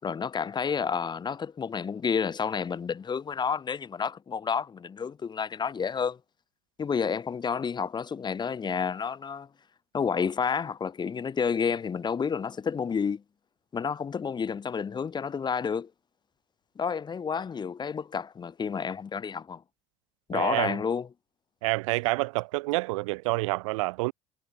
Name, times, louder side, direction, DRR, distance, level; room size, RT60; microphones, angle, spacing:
voice 1, 0.0-6.2 6.8-9.5 9.9-13.2 13.7-15.9 16.8-19.6 20.3-21.1, left 6 dB, 25° left, 4.1 m, -30 dB
voice 2, 20.3-20.8 21.6-24.1, right 23 dB, 90° right, 1.8 m, -28 dB
supercardioid pair, 110°, 16 cm